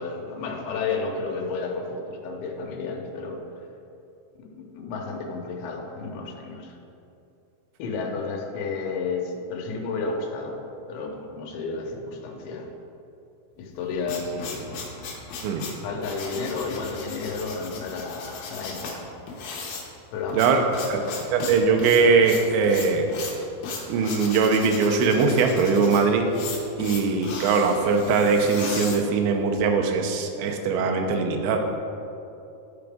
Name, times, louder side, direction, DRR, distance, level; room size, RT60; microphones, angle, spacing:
voice 1, 0.0-3.6 4.3-6.8 7.8-10.6 10.9-12.7 13.6-14.7 15.8-19.1 20.1-20.5 20.8-21.1, left 4 dB, 90° left, 1 dB, 3.1 m, -32 dB
sound 1, 13.7-29.6, left 4 dB, 70° left, 3.0 m, -37 dB
voice 2, 21.3-23.1 23.9-26.3 26.8-31.6, right 4 dB, 85° right, 4 dB, 3.0 m, -21 dB
12.5 x 4.9 x 3.5 m, 2.7 s
omnidirectional pair, 5.0 m